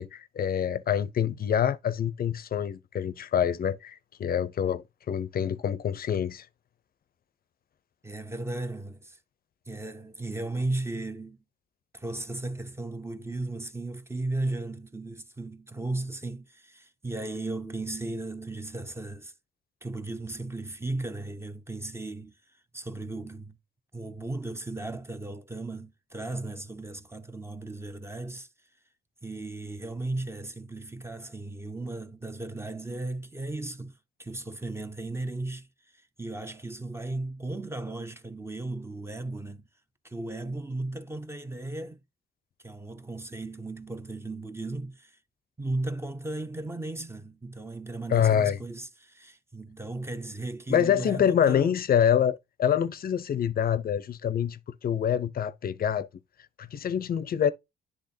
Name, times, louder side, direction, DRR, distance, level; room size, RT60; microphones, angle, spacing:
voice 1, 0.0-6.5 48.1-48.6 50.7-56.1 56.6-57.5, left 9 dB, 50° left, 0.6 m, -26 dB
voice 2, 8.0-9.2 9.7-11.4 11.9-19.3 19.8-22.3 22.7-23.6 23.9-28.5 29.2-35.7 35.9-39.7 40.0-42.0 42.6-45.2 45.6-51.8, right 2 dB, 15° right, 0.8 m, -36 dB
10.5 x 3.5 x 2.7 m
cardioid pair, 90°, 20 cm